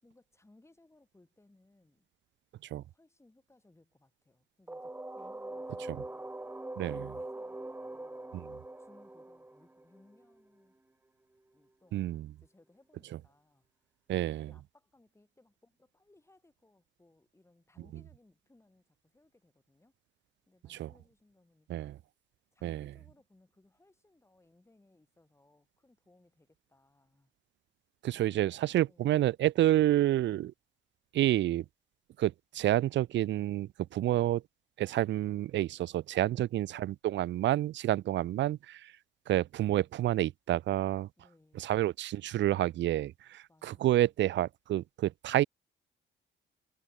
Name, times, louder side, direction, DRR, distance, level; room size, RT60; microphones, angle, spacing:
voice 1, 0.0-2.0 2.8-6.6 6.8-8.2 8.8-10.7 11.5-19.9 20.5-21.9 22.5-27.3 28.8-29.2 36.3-36.5 41.2-41.7 43.5-43.9, left 2 dB, 15° left, 4.9 m, -65 dB
sound 1, 4.7-10.4, right 2 dB, 10° right, 1.4 m, -43 dB
voice 2, 6.8-7.1 8.3-8.6 11.9-12.3 14.1-14.5 20.7-20.9 21.7-22.0 22.6-22.9 28.0-30.5 31.1-31.6 32.2-34.4 34.8-38.9 39.3-41.1 41.6-45.4, right 13 dB, 65° right, 0.5 m, -29 dB
cardioid pair, 90°, 20 cm